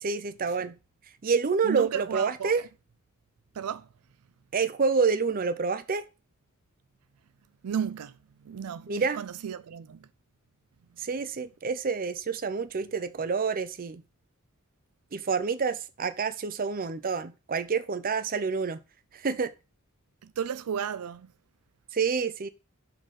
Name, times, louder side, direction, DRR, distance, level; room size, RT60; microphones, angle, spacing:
voice 1, 0.0-0.7 1.2-2.6 4.5-6.0 8.9-9.2 11.0-14.0 15.1-18.8 19.1-19.5 21.9-22.5, right 5 dB, 40° right, 0.6 m, -28 dB
voice 2, 1.6-2.5 3.5-3.9 7.6-10.1 20.2-21.3, right 7 dB, 90° right, 0.4 m, -34 dB
6.4 x 3.9 x 6.2 m
head